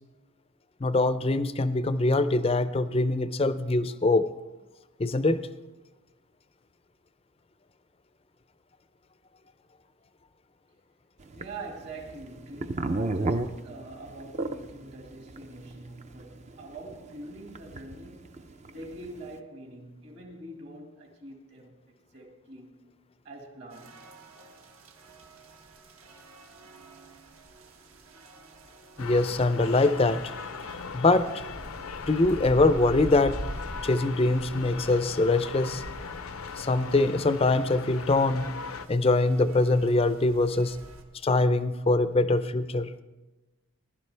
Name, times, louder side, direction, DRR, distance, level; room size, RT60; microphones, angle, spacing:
voice 1, 0.8-4.3 5.0-5.4 29.0-30.2 30.9-31.3 32.1-33.4 33.8-35.8 36.6-38.5 38.9-40.8 41.2-42.9, left 2 dB, 25° left, 0.5 m, -23 dB
sound 1, 11.3-19.3, right 2 dB, 30° right, 0.5 m, -32 dB
voice 2, 11.4-18.3 18.7-22.9 23.2-24.0, right 2 dB, 55° right, 2.0 m, -44 dB
sound 2, 23.7-41.0, right 1 dB, 75° right, 1.5 m, -45 dB
sound 3, 29.0-38.9, left 5 dB, 80° left, 0.7 m, -39 dB
19.5 x 11.5 x 3.3 m
head